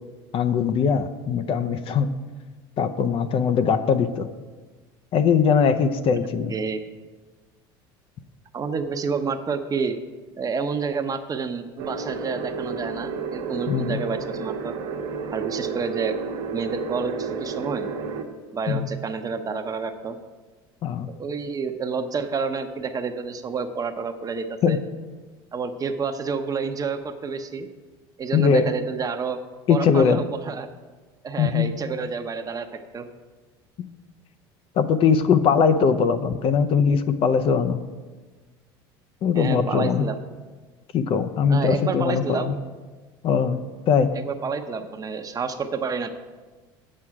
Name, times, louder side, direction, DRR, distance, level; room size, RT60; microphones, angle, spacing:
voice 1, 0.3-2.1 2.8-4.3 5.1-6.5 13.7-14.0 18.7-18.9 20.8-21.1 24.6-24.8 28.3-28.7 29.7-30.2 31.4-31.7 34.8-37.8 39.2-40.1 40.9-42.6 43.2-43.6 43.9-44.1, left 6 dB, 50° left, 10 dB, 0.6 m, -21 dB
voice 2, 8.5-10.0 10.4-14.8 15.3-16.2 16.5-17.9 18.5-20.2 21.2-24.8 25.5-27.7 28.2-29.4 29.7-30.7 31.2-32.7 32.9-33.1 39.3-40.2 41.5-42.6 44.1-46.1, right 5 dB, 30° right, 8 dB, 0.7 m, -29 dB
sound 1, 11.8-18.2, right 5 dB, 75° right, 1.0 m, -31 dB
8.5 x 7.6 x 4.8 m, 1.3 s
supercardioid pair, 90°, 12 cm